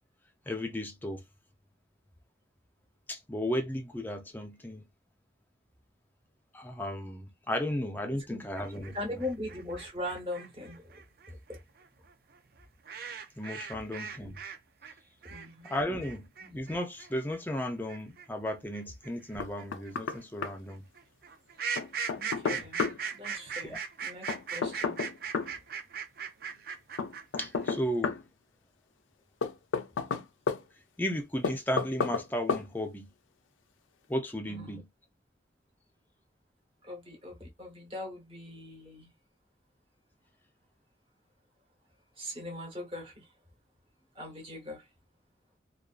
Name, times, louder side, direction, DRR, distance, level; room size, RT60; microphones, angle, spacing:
voice 1, 0.5-1.2 3.1-4.9 6.5-9.2 13.4-14.4 15.6-20.8 22.5-22.7 23.6-23.8 27.4-28.2 31.0-33.1 34.1-34.9, left 1 dB, 10° left, 0.4 m, -34 dB
sound 1, 8.6-14.6 14.8-27.7, right 6 dB, 50° right, 0.4 m, -39 dB
voice 2, 8.9-11.0 15.3-15.7 22.1-22.8 23.1-25.0 34.4-34.8 36.8-39.1 42.2-43.3 44.1-44.8, left 1 dB, 30° right, 1.0 m, -40 dB
Knock, 19.4-20.2 20.4-20.5 21.8-23.0 24.3-25.5 27.0-28.2 29.4-30.6 31.4-32.2 32.5-32.7, left 5 dB, 90° left, 0.4 m, -31 dB
2.6 x 2.3 x 2.4 m
head